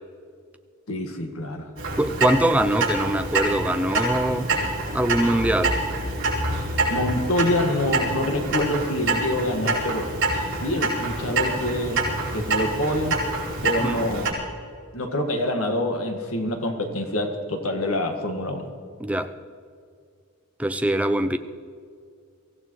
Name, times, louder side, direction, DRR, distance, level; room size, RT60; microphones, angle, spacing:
voice 1, 0.9-1.7 6.9-10.1 10.5-13.2 13.6-14.4 14.9-18.7, left 1 dB, 85° left, 4 dB, 1.8 m, -26 dB
Clock, 1.8-14.3, right 2 dB, 55° right, 5.0 m, -26 dB
voice 2, 2.0-4.5 4.9-5.8 13.8-14.0 19.0-19.3 20.6-21.4, right 1 dB, 5° right, 8 dB, 0.5 m, -23 dB
24.0 x 16.0 x 3.2 m, 2.2 s
head